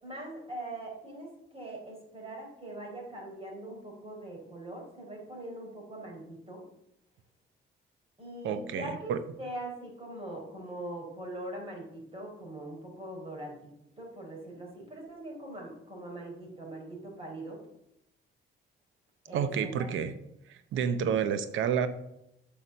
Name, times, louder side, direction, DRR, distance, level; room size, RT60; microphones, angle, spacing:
voice 1, 0.0-6.6 8.2-17.6 19.3-19.9, right 1 dB, 30° right, -1 dB, 4.1 m, -42 dB
voice 2, 8.4-9.2 19.3-20.1 20.5-21.9, right 7 dB, 75° right, 11 dB, 0.8 m, -30 dB
8.2 x 5.8 x 6.5 m, 0.83 s
cardioid pair, 90°, 20 cm